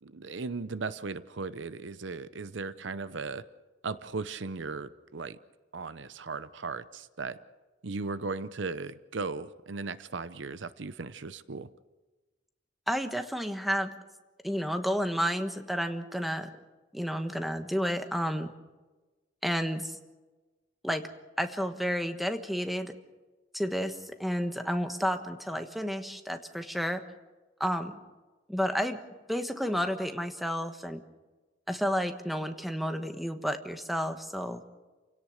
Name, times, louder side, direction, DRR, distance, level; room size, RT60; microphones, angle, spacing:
voice 1, 0.0-3.4 3.8-5.4 5.7-7.4 7.8-11.7, right 4 dB, 70° right, 15 dB, 0.7 m, -37 dB
voice 2, 12.9-13.9 14.4-16.5 16.9-18.5 19.4-19.9 20.8-21.0 21.4-22.9 23.5-27.0 27.6-28.0 28.5-29.0 29.3-31.0 31.7-34.6, equal, ahead, 7 dB, 1.3 m, -31 dB
29.0 x 17.0 x 6.5 m, 1.2 s
head